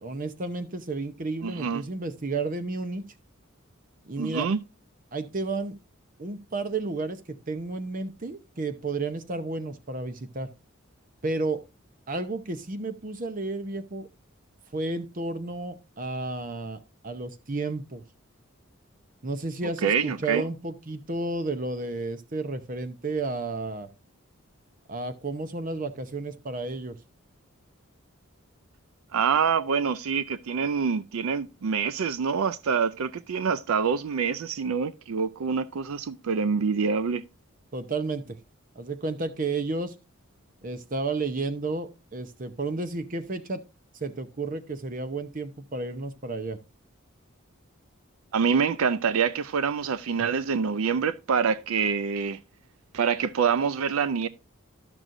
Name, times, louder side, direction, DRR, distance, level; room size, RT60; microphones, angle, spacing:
voice 1, 0.0-3.1 4.0-4.5 5.1-5.8 6.2-10.5 11.2-11.6 12.1-14.1 14.7-18.0 19.2-23.9 24.9-27.0 37.7-38.4 38.8-40.0 40.6-43.6 44.0-46.6, right 3 dB, 40° right, 0.7 m, -32 dB
voice 2, 1.4-1.8 4.2-4.6 19.8-20.4 29.1-37.2 48.3-52.4 52.9-54.3, right 6 dB, 80° right, 0.4 m, -26 dB
12.5 x 6.1 x 2.5 m
head